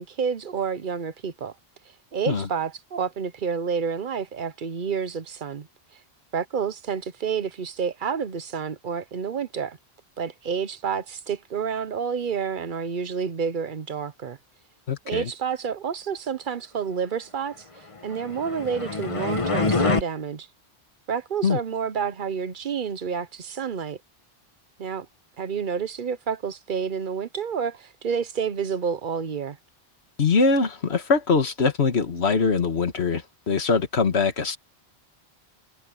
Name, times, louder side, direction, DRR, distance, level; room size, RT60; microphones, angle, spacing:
voice 1, 0.0-1.5 2.1-5.7 6.3-9.8 10.2-14.4 15.0-20.5 21.1-24.0 24.8-25.1 25.4-29.6, right 6 dB, 50° right, 0.9 m, -29 dB
voice 2, 14.9-15.3 21.4-21.6 30.2-34.6, left 4 dB, 80° left, 1.8 m, -22 dB
sound 1, 18.1-20.0, left 3 dB, 30° left, 1.4 m, -25 dB
omnidirectional pair, 1.1 m